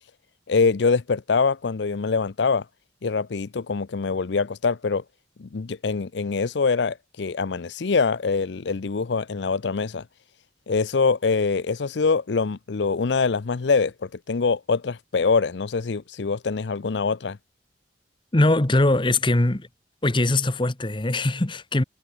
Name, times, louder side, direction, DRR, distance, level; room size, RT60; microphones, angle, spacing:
voice 1, 0.5-2.7 3.0-5.0 5.4-10.0 10.7-17.4, left 4 dB, 70° left, 0.6 m, -24 dB
voice 2, 18.3-19.7 20.0-21.8, left 2 dB, 25° left, 1.1 m, -21 dB
head